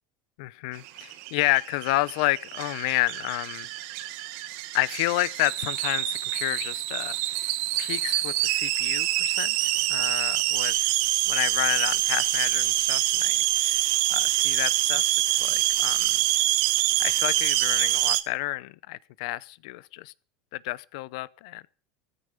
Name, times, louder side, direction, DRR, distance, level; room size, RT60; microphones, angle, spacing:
voice 1, 0.4-3.7 4.7-7.5 7.8-9.5 9.9-10.9 11.3-16.2 17.0-20.1 20.5-21.7, left 20 dB, 75° left, 0.7 m, -30 dB
sound 1, 0.9-18.2, right 16 dB, 65° right, 1.2 m, -26 dB
14.5 x 13.5 x 5.1 m
supercardioid pair, 115°, 4 cm